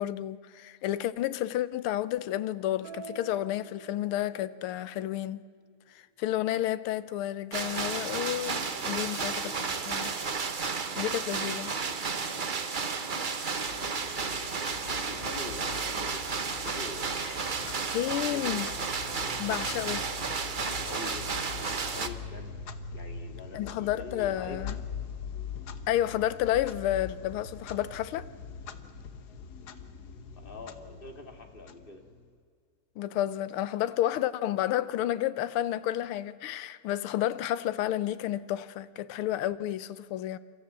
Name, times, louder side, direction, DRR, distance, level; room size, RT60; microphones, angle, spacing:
voice 1, 0.0-5.4 6.2-9.5 9.8-10.1 11.0-11.7 17.2-17.4 17.9-18.7 19.4-20.0 23.5-24.8 25.9-28.3 33.0-40.4, left 12 dB, 80° left, 1.6 m, -31 dB
sound 1, 2.8-4.6, right 3 dB, 55° right, 2.6 m, -47 dB
sound 2, 7.5-22.1, right 5 dB, 40° right, 0.7 m, -32 dB
voice 2, 8.9-9.9 12.2-12.6 13.5-17.3 18.2-18.8 20.8-22.6 22.9-24.8 30.4-32.0, left 3 dB, 25° left, 2.2 m, -46 dB
Clock, 13.6-32.4, left 6 dB, 55° left, 1.4 m, -43 dB
29.5 x 14.0 x 7.5 m
omnidirectional pair, 2.4 m